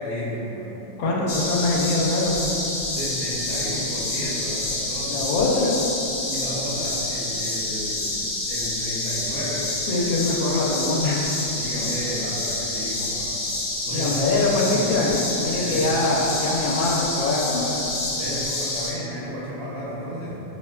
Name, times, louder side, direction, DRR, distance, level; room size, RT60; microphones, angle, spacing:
voice 1, 0.0-1.5 2.9-5.4 6.3-9.7 11.6-13.4 13.9-14.3 14.6-14.9 15.5-16.2 18.1-20.4, equal, 85° right, -11 dB, 0.6 m, -33 dB
voice 2, 1.0-2.5 5.1-5.7 9.9-11.3 13.9-17.8, left 2 dB, 90° left, -3 dB, 1.3 m, -23 dB
sound 1, 1.3-18.9, left 2 dB, 65° left, 0.8 m, -28 dB
6.1 x 2.1 x 2.3 m, 3.0 s
omnidirectional pair, 2.1 m